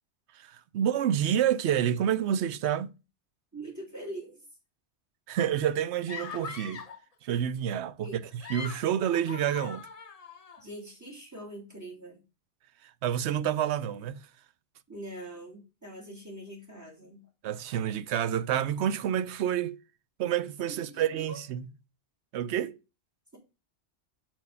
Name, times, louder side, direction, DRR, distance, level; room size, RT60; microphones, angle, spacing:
voice 1, 0.3-2.9 5.3-6.8 7.2-8.2 8.5-9.9 12.8-14.2 17.4-19.8 20.2-21.7 22.3-22.8, right 10 dB, 80° right, 0.9 m, -28 dB
voice 2, 3.5-4.4 8.0-8.2 10.6-12.2 14.9-17.2 20.9-21.4, right 1 dB, 15° right, 3.1 m, -43 dB
sound 1, 6.1-7.0 8.2-10.6, left 5 dB, 40° left, 0.7 m, -42 dB
6.0 x 4.5 x 5.4 m
omnidirectional pair, 1.1 m